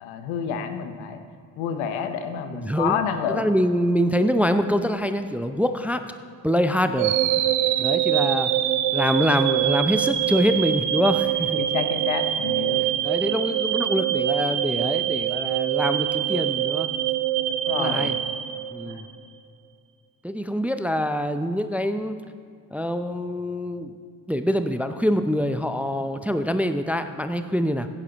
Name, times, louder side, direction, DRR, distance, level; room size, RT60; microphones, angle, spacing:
voice 1, 0.0-1.2 1.6-3.4 11.6-12.8 17.7-18.2 18.9-19.1 23.0-23.1, left 7 dB, 75° left, 8 dB, 1.0 m, -29 dB
voice 2, 2.5-3.0 3.3-6.1 6.4-7.1 7.8-8.5 8.9-11.6 13.0-16.9 17.7-18.2 18.7-19.1 20.2-22.2 22.7-23.9 24.3-27.9, equal, 5° right, 9 dB, 0.6 m, -25 dB
sound 1, 7.0-19.1, right 12 dB, 85° right, 0.8 m, -24 dB
16.0 x 9.9 x 3.0 m, 2.4 s
hypercardioid pair, 40°, 48 cm